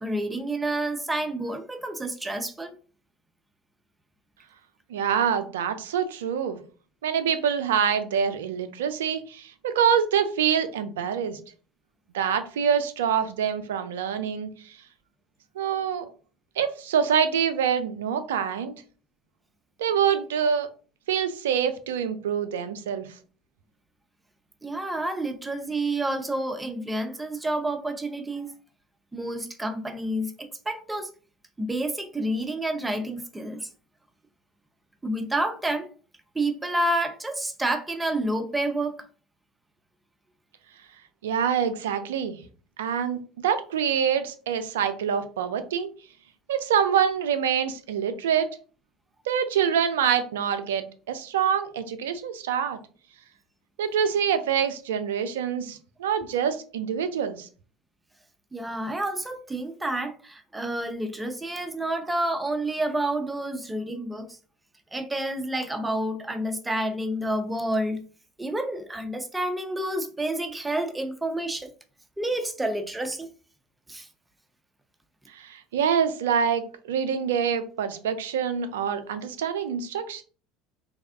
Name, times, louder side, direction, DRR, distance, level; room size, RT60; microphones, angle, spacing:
voice 1, 0.0-2.8 24.6-28.5 29.1-31.1 31.6-33.7 35.0-35.9 36.3-39.0 58.5-64.4 64.9-68.0 68.4-71.7 72.2-73.3 73.9-74.1, right 1 dB, 10° right, 0.6 m, -29 dB
voice 2, 4.9-6.6 7.0-11.4 12.1-14.5 15.6-16.1 16.6-18.8 19.8-20.7 21.1-23.1 41.2-42.4 42.8-45.9 46.5-48.5 49.3-52.8 53.8-57.5 75.3-80.2, right 8 dB, 85° right, 0.4 m, -25 dB
3.4 x 2.3 x 3.4 m
hypercardioid pair, 75°, 0 cm